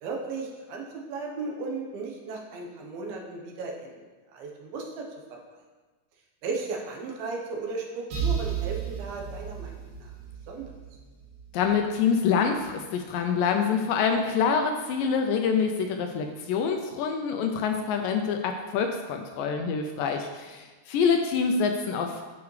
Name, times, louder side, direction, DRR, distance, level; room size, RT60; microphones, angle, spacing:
voice 1, 0.0-4.0 4.3-5.0 6.4-10.1 10.5-10.7, right 3 dB, 80° right, 0 dB, 2.8 m, -35 dB
sound 1, 8.1-11.8, right 8 dB, 65° right, 2.6 m, -33 dB
voice 2, 11.5-22.2, left 6 dB, 80° left, 4 dB, 2.0 m, -26 dB
12.0 x 4.8 x 3.2 m, 1.3 s
omnidirectional pair, 4.3 m